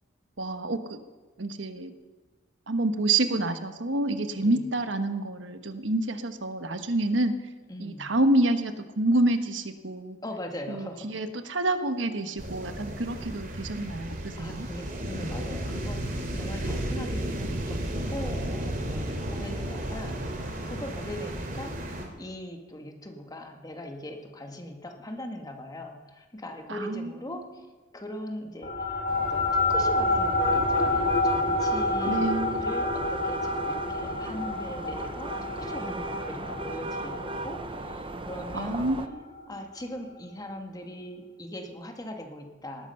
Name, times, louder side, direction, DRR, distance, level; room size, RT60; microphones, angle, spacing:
voice 1, 0.4-1.0 1.4-1.9 2.7-7.3 7.8-10.2 10.7-14.7 26.7-27.1 32.0-32.7 38.5-39.2, right 2 dB, 80° right, 9 dB, 1.3 m, -28 dB
voice 2, 4.3-4.7 7.7-8.1 10.2-11.3 14.4-27.7 27.9-38.9 39.5-42.9, left 1 dB, 20° left, 4 dB, 1.8 m, -40 dB
sound 1, 12.4-22.1, right 1 dB, 50° right, 2.8 m, -33 dB
sound 2, 28.6-39.4, left 2 dB, 50° left, 2.7 m, -28 dB
sound 3, 29.1-39.1, right 3 dB, 30° right, 0.8 m, -37 dB
18.5 x 13.5 x 5.8 m, 1.2 s
head